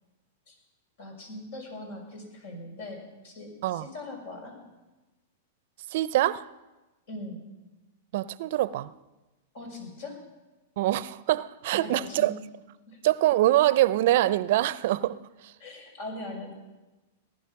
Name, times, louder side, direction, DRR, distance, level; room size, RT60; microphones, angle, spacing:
voice 1, 1.0-4.6 7.1-7.4 9.5-10.2 11.7-12.3 12.9-13.0 15.6-16.5, left 2 dB, 70° left, 6.1 m, -40 dB
voice 2, 5.9-6.5 8.1-8.9 10.8-12.3 13.0-15.5, right 15 dB, 60° right, 0.5 m, -24 dB
19.0 x 11.0 x 5.9 m
hypercardioid pair, 110°, 0 cm